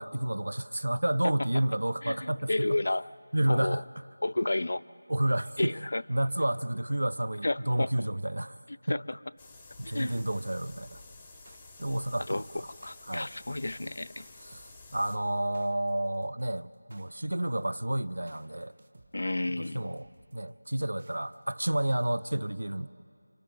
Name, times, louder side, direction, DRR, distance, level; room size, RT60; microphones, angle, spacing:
voice 1, 0.0-2.8 3.3-3.8 5.1-5.7 6.1-8.6 8.9-9.0 9.8-11.0 11.8-12.7 13.1-13.3 14.4-18.7 19.7-22.9, right 1 dB, 80° right, 16 dB, 0.6 m, -30 dB
voice 2, 2.0-3.1 3.5-3.8 4.2-4.8 5.6-6.0 7.4-7.9 8.9-9.2 9.8-10.2 12.3-12.4 12.8-14.2 19.1-19.8, left 2 dB, 50° left, 15 dB, 0.4 m, -31 dB
sound 1, 9.4-15.2, left 3 dB, 5° left, 0.7 m, -52 dB
sound 2, 10.1-22.2, right 2 dB, 30° right, 1.2 m, -57 dB
29.5 x 28.0 x 3.8 m, 2.5 s
figure-of-eight pair, 175°, 0 cm